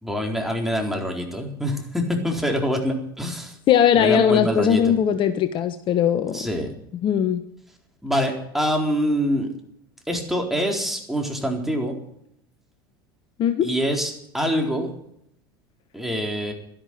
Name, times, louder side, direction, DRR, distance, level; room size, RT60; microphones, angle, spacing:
voice 1, 0.0-3.6 3.9-5.0 6.3-6.7 8.0-9.5 10.1-11.9 13.6-14.9 15.9-16.5, equal, ahead, 2 dB, 4.1 m, -25 dB
voice 2, 3.7-6.5 7.0-7.4 13.4-13.7, left 8 dB, 45° left, 10 dB, 1.2 m, -19 dB
12.5 x 11.0 x 9.3 m, 0.72 s
hypercardioid pair, 90°, 12 cm